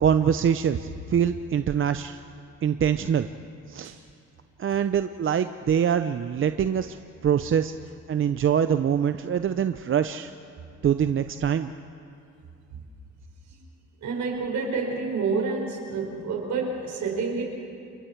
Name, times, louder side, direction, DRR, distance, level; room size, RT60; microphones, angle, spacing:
voice 1, 0.0-2.2 2.6-3.3 3.7-3.9 4.6-7.0 7.2-7.7 8.1-10.3 10.8-11.7, right 8 dB, 45° right, 10 dB, 0.6 m, -24 dB
voice 2, 14.0-17.4, right 4 dB, 70° right, 0 dB, 5.2 m, -29 dB
29.0 x 22.5 x 4.6 m, 2.5 s
cardioid pair, 90°, 30 cm